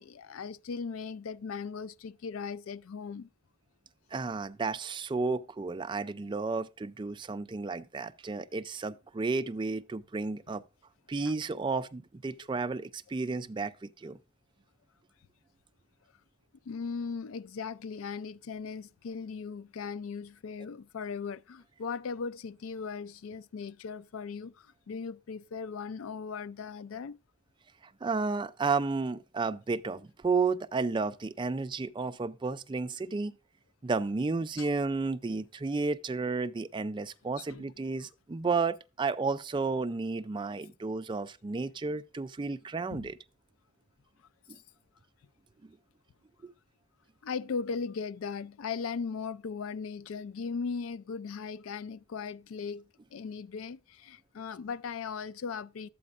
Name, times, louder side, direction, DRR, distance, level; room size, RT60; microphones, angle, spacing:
voice 1, 0.0-3.3 16.7-27.2 34.6-34.7 37.4-37.7 42.9-43.1 44.5-44.6 47.2-52.8 53.1-55.9, left 5 dB, 90° left, 0.4 m, -38 dB
voice 2, 4.1-10.6 11.1-14.2 28.0-33.3 33.8-43.1 46.4-46.5, right 4 dB, 25° right, 0.4 m, -32 dB
12.0 x 8.4 x 2.4 m
head